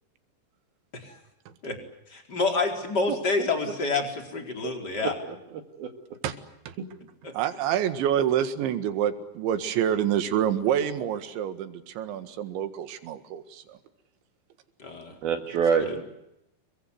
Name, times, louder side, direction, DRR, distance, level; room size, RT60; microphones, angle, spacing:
voice 1, 2.1-5.1 7.2-7.3 14.8-15.1 15.8-16.0, left 3 dB, 25° left, 4 dB, 4.5 m, -28 dB
voice 2, 4.6-5.4 5.8-5.9 6.8-6.9 15.2-16.0, right 6 dB, 60° right, 6 dB, 3.6 m, -27 dB
voice 3, 7.3-13.8, right 10 dB, 85° right, 10 dB, 4.1 m, -27 dB
30.0 x 23.0 x 8.0 m, 0.84 s
omnidirectional pair, 5.2 m